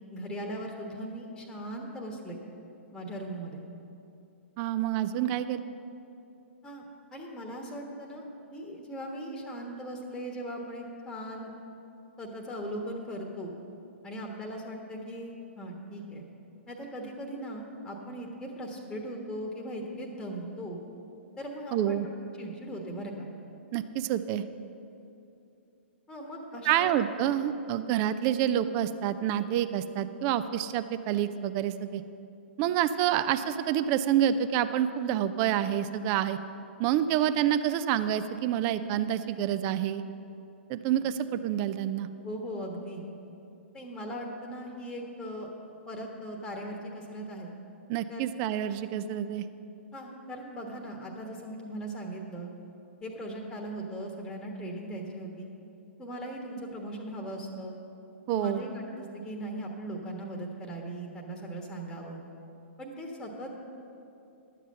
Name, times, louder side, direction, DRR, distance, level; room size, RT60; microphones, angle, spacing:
voice 1, 0.1-2.4 2.9-3.6 6.6-8.3 8.5-11.5 12.2-13.5 14.0-16.2 16.7-20.8 21.4-22.0 22.4-23.3 26.1-26.9 42.2-43.0 43.7-45.5 45.9-47.5 48.1-48.4 49.9-52.5 53.0-55.5 56.0-57.7 58.3-62.2 62.8-63.5, right 1 dB, 5° left, 0 dB, 1.3 m, -39 dB
voice 2, 4.6-5.6 21.7-22.1 23.7-24.4 26.7-32.0 32.6-36.4 36.8-40.1 40.7-42.1 47.9-49.5 58.3-58.6, right 10 dB, 30° right, 12 dB, 0.4 m, -28 dB
11.5 x 7.4 x 6.7 m, 2.7 s
figure-of-eight pair, 115°, 7 cm